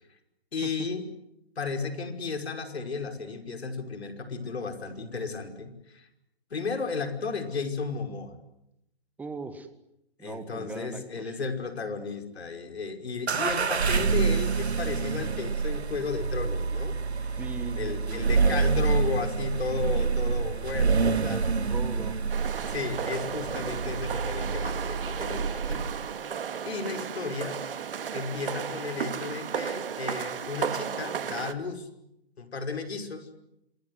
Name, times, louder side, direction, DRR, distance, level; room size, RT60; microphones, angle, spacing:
voice 1, 0.5-1.1 1.6-6.1 6.5-8.4 10.2-17.0 17.7-21.5 22.6-25.8 26.7-27.6 28.1-31.9 32.4-33.3, left 4 dB, 80° left, 7 dB, 5.7 m, -34 dB
voice 2, 9.2-9.7 10.2-11.4 17.4-18.2 21.7-22.2, right 4 dB, 5° right, 10 dB, 1.6 m, -39 dB
sound 1, 13.3-26.1, right 5 dB, 85° right, 2.0 m, -27 dB
sound 2, 22.3-31.5, right 7 dB, 60° right, 2.2 m, -34 dB
27.5 x 22.5 x 9.7 m, 0.83 s
hypercardioid pair, 155°, 32 cm